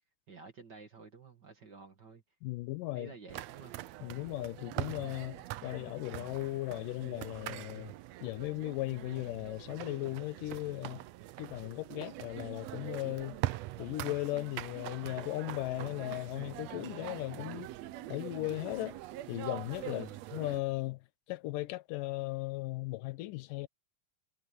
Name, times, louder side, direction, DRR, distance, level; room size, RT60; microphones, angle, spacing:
voice 1, 0.3-2.2 2.9-3.7 19.9-20.2, right 4 dB, 35° right, 2.2 m, -51 dB
voice 2, 2.4-3.1 4.0-7.9 8.2-11.0 11.4-13.4 13.8-17.7 18.1-19.0 19.3-21.0 21.3-23.7, left 18 dB, 85° left, 2.3 m, -37 dB
sound 1, 3.3-20.6, right 15 dB, 80° right, 1.6 m, -43 dB
omnidirectional pair, 3.8 m